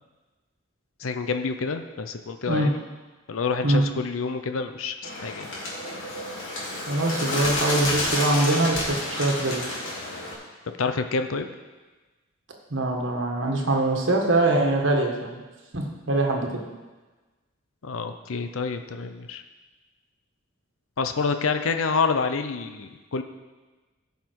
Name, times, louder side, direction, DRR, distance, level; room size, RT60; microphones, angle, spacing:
voice 1, 1.0-2.8 3.3-5.5 10.8-11.5 17.8-19.4 21.0-23.2, left 4 dB, 85° left, 8 dB, 0.6 m, -28 dB
Bird, 5.0-10.3, left 1 dB, 70° left, 2.9 m, -30 dB
voice 2, 6.9-9.6 12.7-15.4 15.7-16.6, right 2 dB, 70° right, 1 dB, 1.6 m, -23 dB
16.0 x 5.8 x 4.6 m, 1.2 s
head